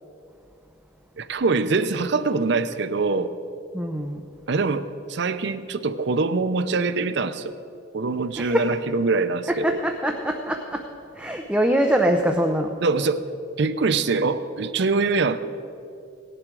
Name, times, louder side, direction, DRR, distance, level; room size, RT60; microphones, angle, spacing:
voice 1, 1.2-3.3 4.5-7.5 7.9-9.8 12.8-13.3 13.6-15.5, right 4 dB, 60° right, 11 dB, 0.6 m, -24 dB
voice 2, 3.7-4.2 8.4-8.7 9.5-10.8 11.2-12.7, right 1 dB, 5° right, 3 dB, 0.6 m, -23 dB
17.5 x 11.0 x 4.7 m, 2.6 s
head